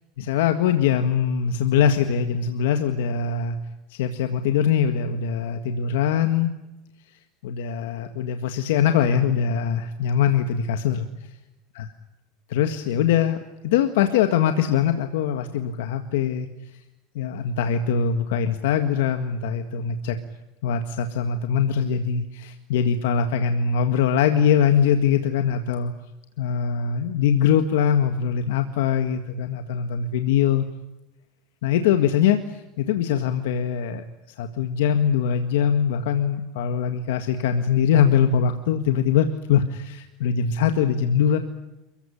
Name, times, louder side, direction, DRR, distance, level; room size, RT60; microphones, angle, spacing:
voice 1, 0.2-3.6 3.9-6.5 7.4-11.3 11.7-11.9 12.5-16.5 17.2-20.2 20.6-25.9 26.4-30.6 31.6-34.0 34.4-41.4, left 8 dB, 85° left, 7 dB, 1.8 m, -22 dB
29.0 x 15.5 x 9.9 m, 1.0 s
supercardioid pair, 140°, 0 cm